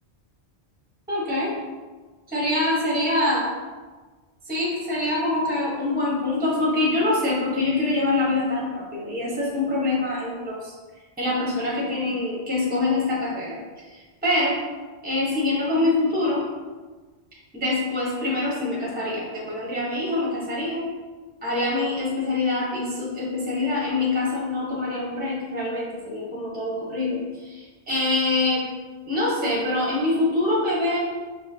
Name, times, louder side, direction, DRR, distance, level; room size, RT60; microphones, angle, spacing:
voice 1, 1.1-1.6 2.3-3.5 4.5-10.7 11.2-13.6 13.9-14.6 15.0-16.4 17.5-20.8 21.4-28.6 29.1-31.0, left 2 dB, 10° right, -6 dB, 0.9 m, -25 dB
5.2 x 2.2 x 2.7 m, 1.3 s
omnidirectional pair, 1.1 m